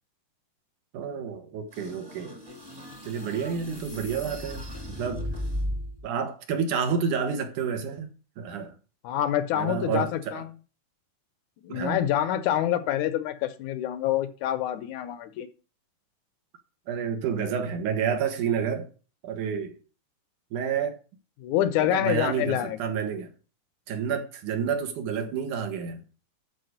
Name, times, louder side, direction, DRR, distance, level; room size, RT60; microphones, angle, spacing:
voice 1, 0.9-2.3 3.0-5.3 6.0-8.1 8.4-8.7 9.5-10.4 11.7-12.0 16.9-18.9 19.2-19.8 20.5-21.0 21.9-23.3 23.9-26.0, right 7 dB, 75° right, 3.1 m, -29 dB
sound 1, 1.7-6.1, left 1 dB, 10° right, 1.1 m, -36 dB
voice 2, 9.0-10.4 11.6-15.5 21.4-22.8, left 11 dB, 75° left, 2.1 m, -26 dB
12.0 x 4.8 x 6.5 m
omnidirectional pair, 3.7 m